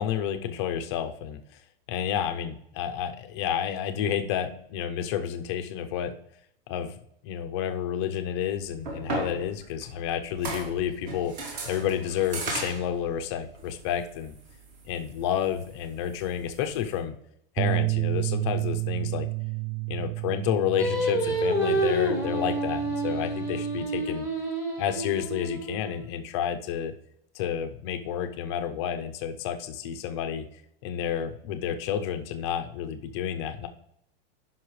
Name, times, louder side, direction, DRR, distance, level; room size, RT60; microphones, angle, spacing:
voice 1, 0.0-1.4 1.9-6.1 6.7-6.9 7.2-11.3 11.6-14.3 14.9-17.2 17.6-19.3 19.9-24.3 24.8-26.9 27.3-30.5 30.8-33.7, left 9 dB, 30° left, 8 dB, 0.5 m, -30 dB
sound 1, 8.5-17.0, right 3 dB, 45° right, 2.4 m, -38 dB
sound 2, 17.6-23.8, right 24 dB, 60° right, 0.4 m, -31 dB
Singing, 20.8-26.0, right 1 dB, 10° right, 1.0 m, -28 dB
14.5 x 5.7 x 3.1 m, 0.77 s
supercardioid pair, 180°, 30 cm